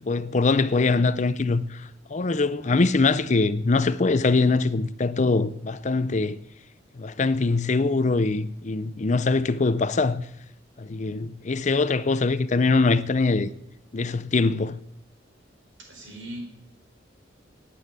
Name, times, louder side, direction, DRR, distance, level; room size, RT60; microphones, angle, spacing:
voice 1, 0.0-6.4 7.0-10.2 10.8-13.5 13.9-14.8, left 3 dB, 40° left, 0.6 m, -23 dB
voice 2, 15.8-16.4, right 1 dB, 85° right, 4.2 m, -40 dB
11.0 x 8.6 x 9.3 m
head